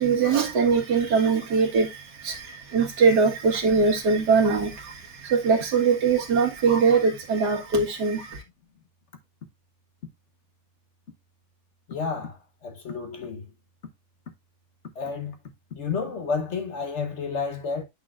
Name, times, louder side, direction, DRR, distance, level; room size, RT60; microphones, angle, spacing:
voice 1, 0.0-8.4, right 5 dB, 60° right, 2.2 m, -22 dB
voice 2, 11.9-13.4 15.0-15.4 15.8-17.8, left 5 dB, 50° left, 0.9 m, -31 dB
8.6 x 6.1 x 2.4 m
omnidirectional pair, 2.1 m